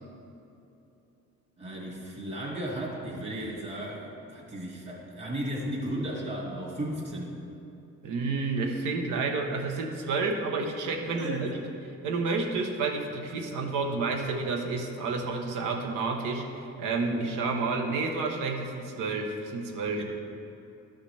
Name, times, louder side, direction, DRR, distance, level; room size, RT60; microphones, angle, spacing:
voice 1, 1.6-7.4 11.1-11.5 19.9-20.0, right 1 dB, 40° right, -3 dB, 2.1 m, -35 dB
voice 2, 8.0-11.5 12.0-20.0, right 3 dB, 90° right, 3 dB, 1.0 m, -30 dB
13.0 x 5.7 x 3.3 m, 2.8 s
cardioid pair, 90°, 30 cm